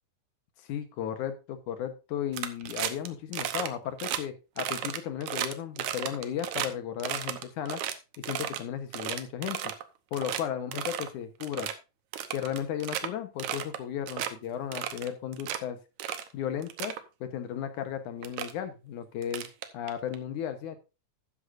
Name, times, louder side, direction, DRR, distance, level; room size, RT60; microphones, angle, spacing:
voice 1, 0.7-7.8 8.2-9.7 10.1-11.7 12.3-15.8 16.3-16.9 17.2-20.8, left 9 dB, 70° left, 9 dB, 2.4 m, -35 dB
sound 1, 2.3-3.1 3.3-3.7 4.0-4.2 4.6-6.7 7.0-8.6 8.9-9.8 10.1-10.4 10.7-11.1 11.4-11.7 12.1-13.1 13.4-13.8 14.1-14.3 14.7-15.6 16.0-16.3 16.6-17.0 17.8-17.9 18.2-18.5 19.2-20.1, right 11 dB, 70° right, 2.1 m, -34 dB
13.0 x 9.9 x 2.6 m, 0.29 s
omnidirectional pair, 4.0 m